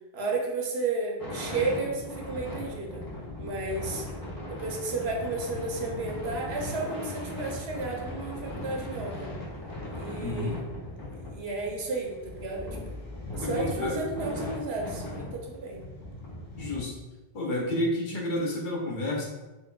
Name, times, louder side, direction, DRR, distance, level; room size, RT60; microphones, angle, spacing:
voice 1, 0.1-3.0 3.4-4.0 4.5-9.3 9.9-10.6 11.0-13.0 13.3-15.8, right 3 dB, 85° right, 0 dB, 0.9 m, -33 dB
sound 1, 1.2-16.8, left 1 dB, 20° left, 0.8 m, -38 dB
voice 2, 10.2-10.6 13.4-14.0 16.6-17.0 17.3-19.2, left 1 dB, 55° left, -2 dB, 0.7 m, -30 dB
3.6 x 2.6 x 2.2 m, 1.1 s
omnidirectional pair, 1.1 m